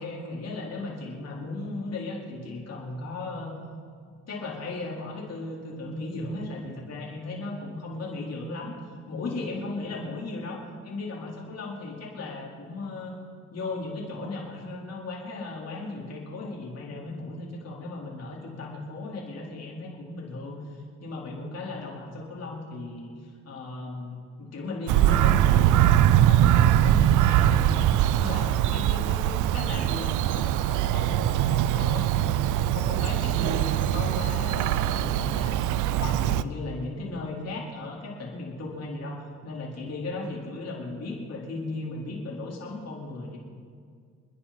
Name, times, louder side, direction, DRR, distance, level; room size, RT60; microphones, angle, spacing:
voice 1, 0.0-3.5 4.3-8.7 9.1-10.6 10.8-13.1 13.5-27.9 28.2-32.1 32.7-35.6 35.9-43.4, left 2 dB, 55° left, -3 dB, 4.4 m, -36 dB
Bird vocalization bird call bird song, 24.9-36.4, right 12 dB, 85° right, 0.5 m, -22 dB
29.0 x 10.5 x 4.4 m, 2.1 s
cardioid pair, 90°, 30 cm